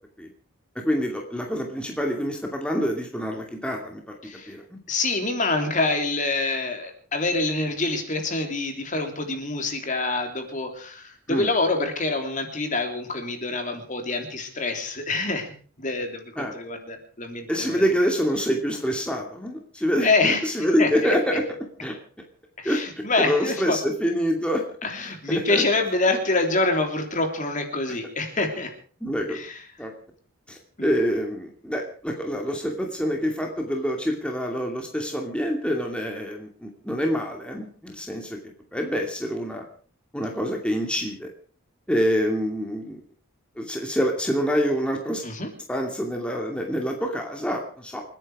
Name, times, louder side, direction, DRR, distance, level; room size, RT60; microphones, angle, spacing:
voice 1, 0.7-4.1 4.5-4.8 11.3-11.5 16.4-16.5 17.5-21.4 21.8-22.0 22.6-22.8 23.2-24.6 25.3-25.6 29.0-29.4 29.8-29.9 30.5-38.4 38.7-39.6 40.1-41.3 41.9-43.0 43.6-45.2 45.7-48.0, equal, 5° left, 1 dB, 2.5 m, -26 dB
voice 2, 4.9-17.8 20.0-20.4 20.8-21.1 22.6-23.8 24.8-28.7 29.3-29.6 30.8-30.9 45.2-45.5, left 3 dB, 40° left, 5 dB, 3.4 m, -26 dB
29.5 x 9.9 x 4.9 m, 0.43 s
head